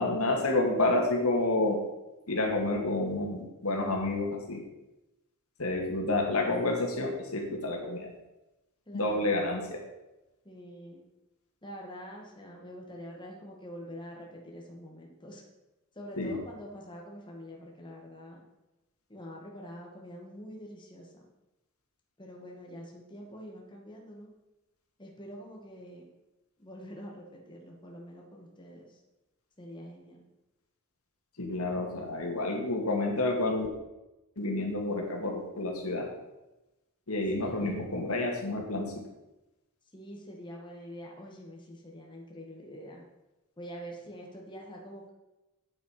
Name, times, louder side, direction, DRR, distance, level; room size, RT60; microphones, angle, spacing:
voice 1, 0.0-1.8 2.3-4.6 5.6-8.1 8.9-9.8 16.2-16.3 31.4-33.7 34.4-36.1 37.1-39.0, left 2 dB, 80° left, 1 dB, 2.3 m, -29 dB
voice 2, 8.9-9.4 10.4-11.0 11.6-15.4 15.9-18.4 19.1-21.3 22.2-24.3 25.0-26.1 26.6-29.0 29.6-30.2 37.4-37.9 39.9-43.0 43.6-45.1, equal, 20° left, -1 dB, 2.0 m, -45 dB
9.1 x 8.2 x 5.9 m, 1.0 s
head